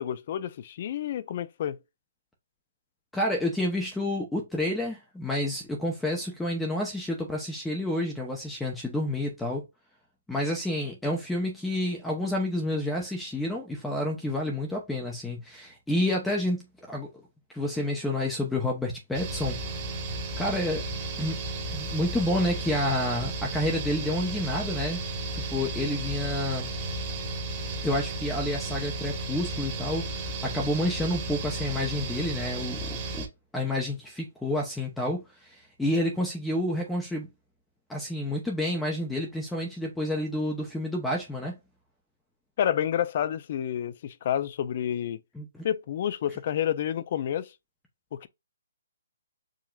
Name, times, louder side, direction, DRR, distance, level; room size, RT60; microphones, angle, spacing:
voice 1, 0.0-1.8 42.6-45.2 45.6-47.5 48.1-48.3, left 10 dB, 45° left, 0.4 m, -29 dB
voice 2, 3.1-9.6 10.3-17.2 17.5-19.8 20.4-20.8 21.2-21.4 21.7-25.0 25.3-26.7 27.8-30.1 30.4-33.3 33.5-37.3 37.9-41.6 45.3-45.6, left 1 dB, 5° left, 0.7 m, -29 dB
sound 1, 19.1-33.3, right 2 dB, 25° right, 1.2 m, -34 dB
4.8 x 2.9 x 2.3 m
hypercardioid pair, 160°, 0 cm